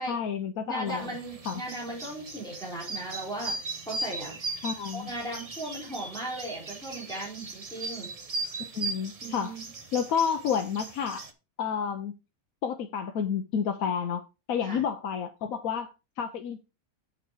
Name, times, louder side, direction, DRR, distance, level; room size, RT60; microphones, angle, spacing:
voice 1, 0.0-1.1 1.5-1.6 4.6-5.1 8.7-9.5 9.9-11.2 11.6-12.1 12.6-14.2 14.5-16.6, left 7 dB, 80° left, 1.2 m, -30 dB
voice 2, 0.7-4.4 4.9-8.1 9.2-9.6 14.6-14.8, right 1 dB, 5° left, 4.3 m, -37 dB
sound 1, 0.9-11.3, right 3 dB, 30° right, 0.9 m, -38 dB
8.0 x 6.4 x 4.6 m
omnidirectional pair, 1.5 m